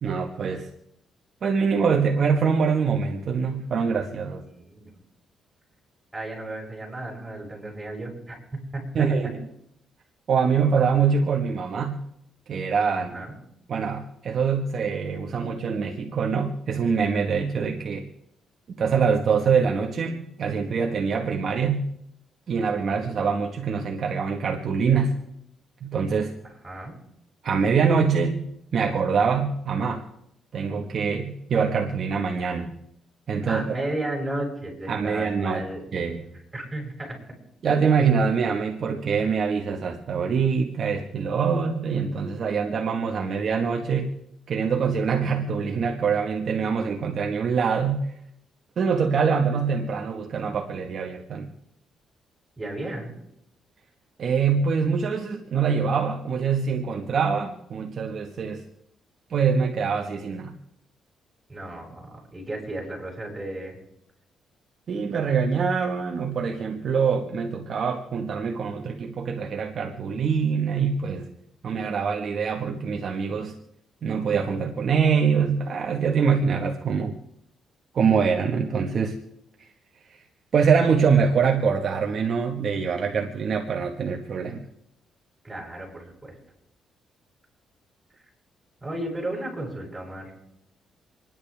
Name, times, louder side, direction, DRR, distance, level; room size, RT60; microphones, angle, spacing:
voice 1, 0.0-0.7 1.4-4.4 8.9-9.4 10.3-12.0 12.5-13.2 13.7-18.1 18.8-21.8 22.5-25.2 25.8-26.3 27.4-28.4 28.7-30.0 30.5-32.7 33.3-33.7 34.9-35.6 35.9-36.3 37.6-44.1 44.5-48.0 48.8-51.5 54.2-58.6 59.3-60.5 64.9-71.3 71.6-73.6 74.0-77.1 77.9-79.2 80.5-84.6, right 6 dB, 55° right, 1 dB, 1.5 m, -24 dB
voice 2, 4.5-4.9 6.1-8.4 8.7-9.0 12.9-13.3 22.9-23.2 26.4-26.9 33.5-35.8 36.5-37.2 52.6-53.1 61.5-63.8 85.4-86.3 88.8-90.3, right 1 dB, 15° right, -2 dB, 7.7 m, -34 dB
28.0 x 11.0 x 3.5 m, 0.79 s
cardioid pair, 90°, 0 cm